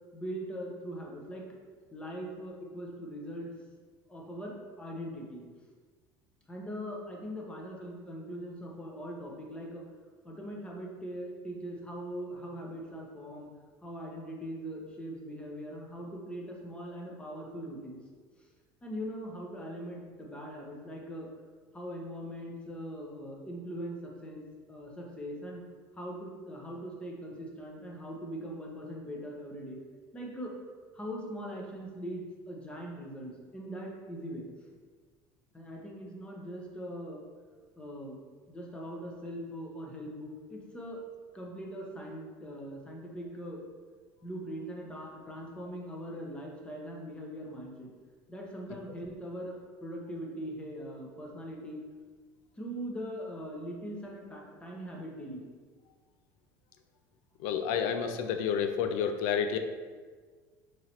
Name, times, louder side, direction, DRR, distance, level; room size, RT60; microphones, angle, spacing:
voice 1, 0.1-1.5 1.9-3.5 4.1-5.5 6.5-9.9 10.2-13.5 13.8-18.0 18.4-18.5 18.8-21.3 21.7-24.4 24.7-25.6 25.9-29.8 30.1-30.5 30.9-34.5 35.5-37.2 37.8-38.2 38.5-41.0 41.3-43.6 44.2-47.9 48.3-51.8 52.6-55.4, equal, 10° left, -1 dB, 0.6 m, -41 dB
voice 2, 57.4-59.6, left 7 dB, 80° left, 7 dB, 0.4 m, -30 dB
3.9 x 3.0 x 2.9 m, 1.5 s
cardioid pair, 140°, 8 cm